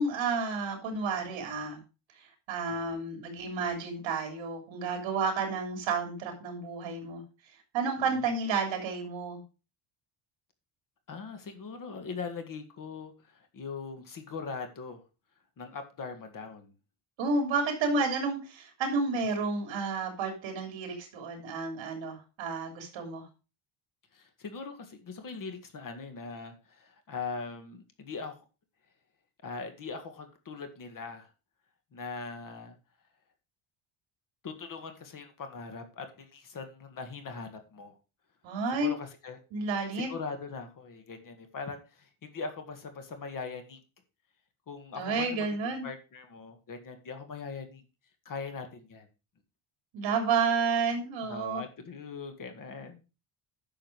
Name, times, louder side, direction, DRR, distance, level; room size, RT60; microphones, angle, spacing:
voice 1, 0.0-1.8 2.5-7.2 7.7-9.4 17.2-23.2 38.4-38.9 39.5-40.1 44.9-45.9 49.9-51.6, right 4 dB, 60° right, 3 dB, 3.3 m, -31 dB
voice 2, 11.1-15.0 15.6-16.7 24.1-28.4 29.4-31.3 31.9-32.8 34.4-38.0 38.8-39.4 40.1-43.8 44.7-45.5 45.8-47.8 48.3-49.1 51.2-53.0, left 4 dB, 40° left, 7 dB, 1.9 m, -41 dB
10.5 x 6.6 x 4.7 m, 0.31 s
cardioid pair, 145°, 50 cm